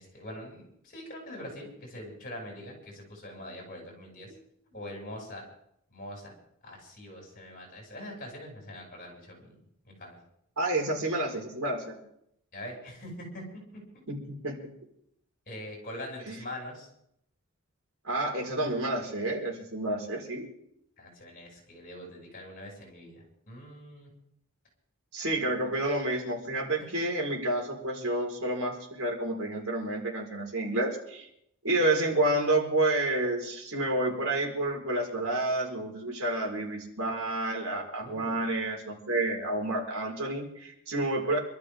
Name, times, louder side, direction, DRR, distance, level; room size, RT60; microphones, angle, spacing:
voice 1, 0.0-4.3 4.7-5.4 5.9-6.3 6.6-9.5 9.8-10.2 12.5-13.4 15.5-16.9 21.0-24.1 38.0-38.5, left 1 dB, 40° left, -1 dB, 6.7 m, -43 dB
voice 2, 10.6-12.0 14.1-14.7 16.3-16.4 18.0-20.5 25.1-31.3 31.6-41.4, right 1 dB, 80° right, -1 dB, 4.7 m, -29 dB
26.5 x 13.0 x 3.7 m, 0.72 s
head